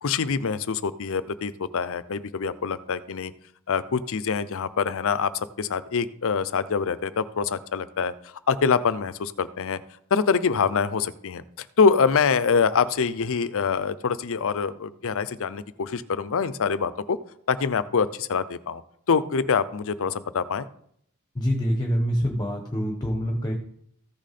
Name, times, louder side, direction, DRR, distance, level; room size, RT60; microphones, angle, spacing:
voice 1, 0.0-3.3 3.7-9.8 10.1-17.2 17.5-18.8 19.1-20.7, left 5 dB, 65° left, 15 dB, 0.6 m, -25 dB
voice 2, 21.3-23.5, equal, 20° left, 3 dB, 1.3 m, -25 dB
14.5 x 6.3 x 4.2 m, 0.69 s
head